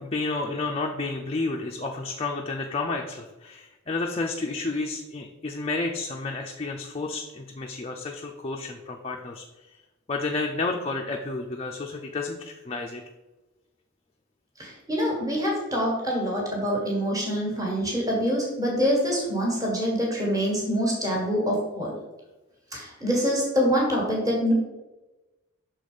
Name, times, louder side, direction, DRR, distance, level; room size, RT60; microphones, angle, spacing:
voice 1, 0.0-9.4 10.1-13.0, left 3 dB, 25° left, 1 dB, 0.4 m, -31 dB
voice 2, 14.6-21.9 22.7-24.5, equal, 15° right, -2 dB, 1.5 m, -25 dB
6.2 x 4.1 x 4.9 m, 1.1 s
head